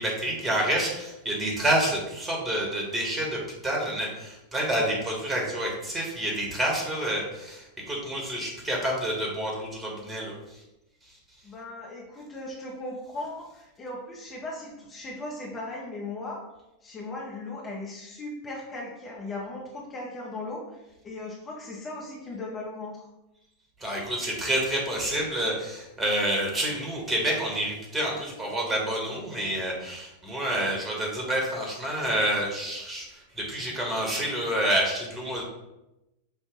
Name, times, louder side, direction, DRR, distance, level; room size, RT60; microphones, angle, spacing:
voice 1, 0.0-10.3 23.8-33.1 33.4-35.4, right 1 dB, 15° right, -2 dB, 1.5 m, -28 dB
voice 2, 11.4-16.4 16.8-23.1, left 2 dB, 20° left, -3 dB, 0.8 m, -38 dB
5.6 x 2.4 x 3.9 m, 0.94 s
figure-of-eight pair, 90°, 0 cm